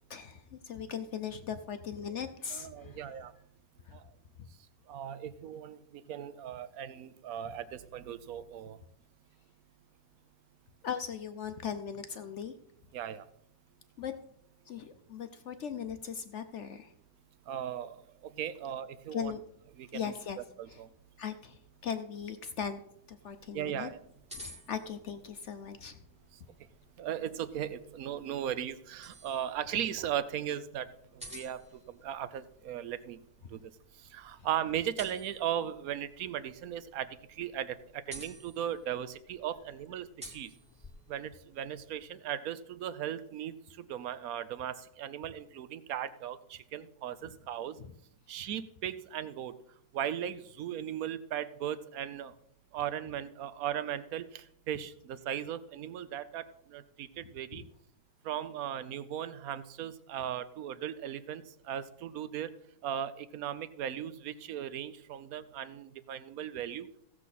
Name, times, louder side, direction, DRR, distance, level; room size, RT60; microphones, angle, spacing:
voice 1, 0.1-3.3 3.8-4.0 4.4-4.5 10.8-12.5 14.0-14.1 14.7-16.9 19.1-19.4 19.9-20.4 20.7-20.8 21.2-22.8 23.1-23.9 24.3-26.0 34.4-34.5 47.8-47.9 57.5-57.7, left 7 dB, 70° left, 9 dB, 0.7 m, -39 dB
voice 2, 2.5-3.3 3.9-4.0 4.9-8.8 12.9-13.2 17.5-18.0 18.4-19.3 19.8-20.1 20.6-20.9 23.5-24.0 27.0-30.9 31.1-31.6 32.0-33.2 33.5-33.6 34.1-37.1 37.4-37.8 38.1-40.5 41.1-43.6 43.9-47.8 48.3-49.5 49.9-52.3 52.7-56.4 56.7-57.6 58.2-62.5 62.8-66.9, right 10 dB, 60° right, 14 dB, 1.0 m, -37 dB
sound 1, 23.2-42.0, equal, 5° right, 1.8 m, -54 dB
16.0 x 7.4 x 4.1 m, 0.70 s
omnidirectional pair, 2.1 m